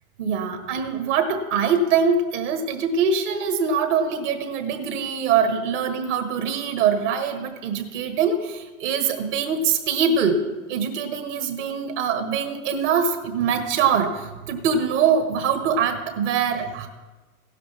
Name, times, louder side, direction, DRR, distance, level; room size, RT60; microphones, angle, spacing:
voice 1, 0.2-16.9, right 6 dB, 55° right, 6 dB, 1.8 m, -23 dB
16.0 x 12.0 x 3.6 m, 1.2 s
hypercardioid pair, 120°, 43 cm